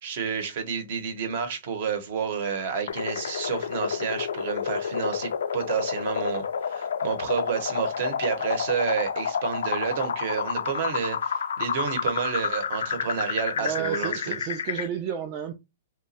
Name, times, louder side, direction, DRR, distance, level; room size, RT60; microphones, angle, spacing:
voice 1, 0.0-14.3, right 6 dB, 45° right, 0.9 m, -30 dB
sound 1, 2.9-14.9, left 7 dB, 85° left, 0.3 m, -30 dB
voice 2, 13.6-15.5, right 9 dB, 25° right, 0.4 m, -31 dB
2.9 x 2.2 x 4.1 m
hypercardioid pair, 165°, 0 cm